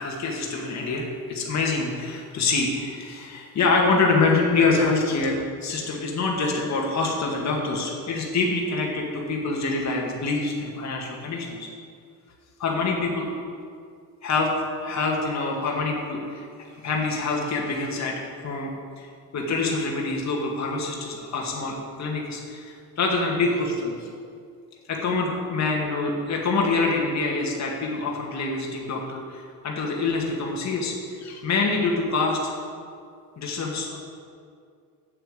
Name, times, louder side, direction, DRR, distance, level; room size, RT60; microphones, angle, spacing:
voice 1, 0.0-5.4 5.6-11.7 12.6-13.3 14.2-14.5 14.8-16.5 16.8-18.2 18.4-18.7 19.0-19.1 19.3-24.1 24.9-32.5 33.4-34.0, left 3 dB, 50° left, -1 dB, 2.0 m, -25 dB
8.8 x 7.1 x 8.5 m, 2.2 s
cardioid pair, 130°, 34 cm